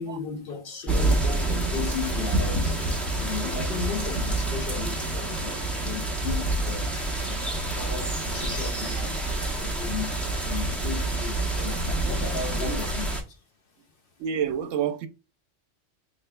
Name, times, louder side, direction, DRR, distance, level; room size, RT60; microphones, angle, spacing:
voice 1, 0.0-2.8 3.1-6.9 7.2-13.4, left 6 dB, 60° left, 0.6 m, -36 dB
sound 1, 0.9-13.2, right 2 dB, ahead, 0.8 m, -27 dB
voice 2, 14.2-15.1, right 8 dB, 85° right, 1.0 m, -28 dB
4.5 x 3.3 x 2.2 m
omnidirectional pair, 1.3 m